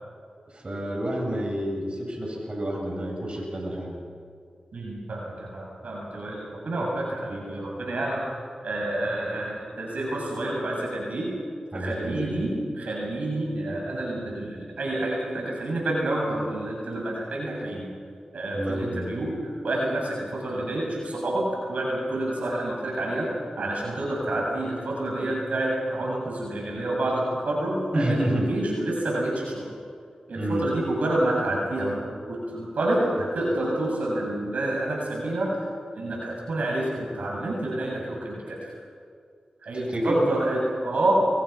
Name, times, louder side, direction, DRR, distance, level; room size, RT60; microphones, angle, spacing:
voice 1, 0.5-4.0 11.7-12.4 18.5-19.0 27.9-28.5 30.4-30.6 39.9-40.2, right 1 dB, 45° right, 0 dB, 8.0 m, -29 dB
voice 2, 4.7-8.3 8.6-11.3 11.7-17.9 18.3-29.7 30.3-35.6 36.0-38.7 39.6-41.1, right 1 dB, 80° right, -2 dB, 7.5 m, -28 dB
29.5 x 25.0 x 6.0 m, 2.2 s
cardioid pair, 45°, 2 cm